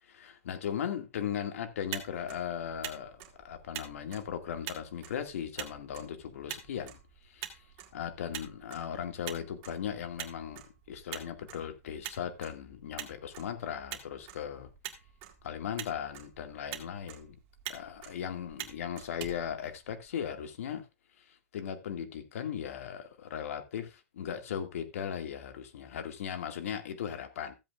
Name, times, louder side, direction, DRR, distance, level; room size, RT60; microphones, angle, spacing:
voice 1, 0.1-7.0 7.3-7.6 7.9-10.6 10.9-14.7 15.4-17.4 17.7-20.8 21.3-27.5, left 8 dB, 70° left, 2.2 m, -38 dB
Motor vehicle (road), 1.7-20.2, right 12 dB, 35° right, 1.9 m, -46 dB
15.0 x 8.2 x 2.5 m
supercardioid pair, 155°, 8 cm